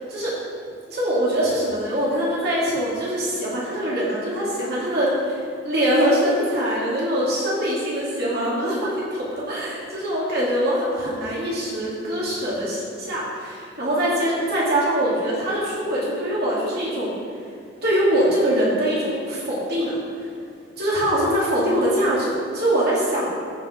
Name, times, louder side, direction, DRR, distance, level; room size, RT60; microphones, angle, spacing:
voice 1, 0.9-17.1 17.8-20.3 20.8-23.2, equal, 55° right, -7 dB, 2.8 m, -23 dB
14.5 x 5.5 x 5.2 m, 2.4 s
head